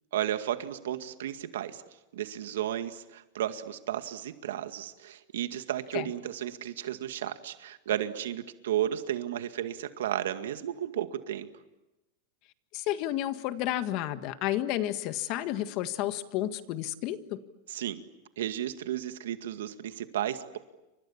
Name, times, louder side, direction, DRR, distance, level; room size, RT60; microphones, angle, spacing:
voice 1, 0.1-1.8 2.1-11.5 17.7-18.1 18.4-20.6, right 11 dB, 90° right, 9 dB, 2.0 m, -33 dB
voice 2, 12.7-17.4, left 13 dB, 45° left, 10 dB, 1.7 m, -31 dB
30.0 x 25.5 x 7.3 m, 0.97 s
supercardioid pair, 145°, 0 cm